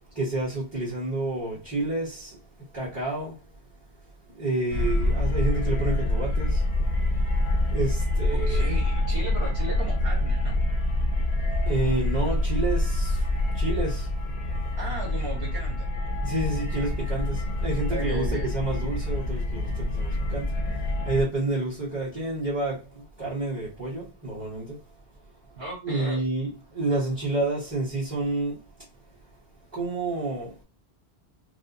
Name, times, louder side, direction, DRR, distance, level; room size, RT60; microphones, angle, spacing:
voice 1, 0.1-2.4 2.7-3.4 4.3-6.6 7.7-8.6 11.6-13.2 13.5-14.1 16.2-24.8 25.8-28.6 29.7-30.6, right 2 dB, 15° right, 1.3 m, -29 dB
sound 1, 4.7-21.2, left 1 dB, 75° left, 1.0 m, -26 dB
voice 2, 8.5-10.6 14.8-15.9 17.9-18.5 25.6-26.2, right 2 dB, 65° right, 1.4 m, -36 dB
4.7 x 2.1 x 2.7 m
omnidirectional pair, 1.1 m